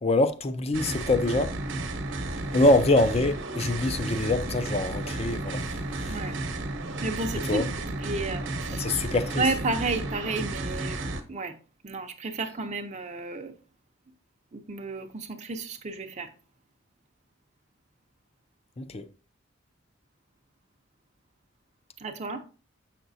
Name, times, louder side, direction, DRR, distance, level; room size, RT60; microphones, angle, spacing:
voice 1, 0.0-1.5 2.5-6.2 7.5-7.7 8.8-9.4 18.8-19.0, left 2 dB, 30° left, 0.5 m, -25 dB
sound 1, 0.7-11.2, right 2 dB, 65° right, 1.0 m, -33 dB
voice 2, 7.0-8.9 9.4-11.0 11.3-11.6 11.8-13.5 14.5-16.3 22.0-22.4, right 3 dB, 35° right, 0.6 m, -32 dB
7.0 x 5.9 x 2.7 m
head